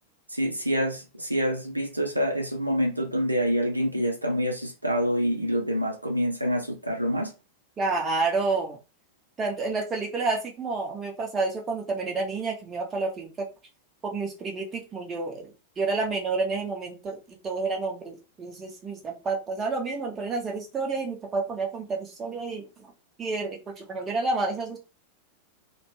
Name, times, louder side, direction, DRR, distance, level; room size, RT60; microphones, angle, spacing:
voice 1, 0.3-7.3, equal, 85° right, 0.4 m, -26 dB
voice 2, 7.8-8.8 9.4-13.3 14.0-17.2 17.4-22.6 23.2-24.8, right 3 dB, 20° right, 0.9 m, -29 dB
2.5 x 2.1 x 3.1 m
figure-of-eight pair, 90°, 0 cm